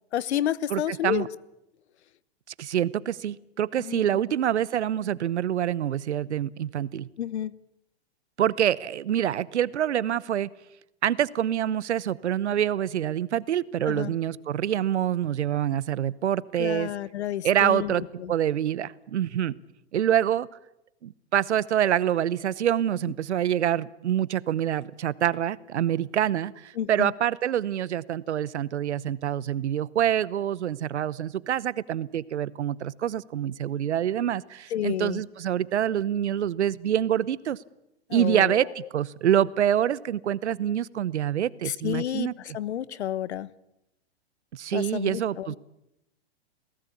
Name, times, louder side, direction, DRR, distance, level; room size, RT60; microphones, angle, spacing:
voice 1, 0.1-1.3 3.8-4.1 7.2-7.5 13.9-14.1 16.6-18.3 26.7-27.1 34.7-35.2 38.1-38.7 41.6-43.5 44.7-45.6, left 11 dB, 70° left, 20 dB, 1.1 m, -30 dB
voice 2, 0.7-1.3 2.6-7.1 8.4-10.5 11.0-16.9 17.4-19.5 19.9-20.5 21.0-37.6 38.1-42.3 44.5-45.6, right 10 dB, 80° right, 20 dB, 1.0 m, -26 dB
28.0 x 17.5 x 8.5 m, 0.89 s
hypercardioid pair, 120°, 34 cm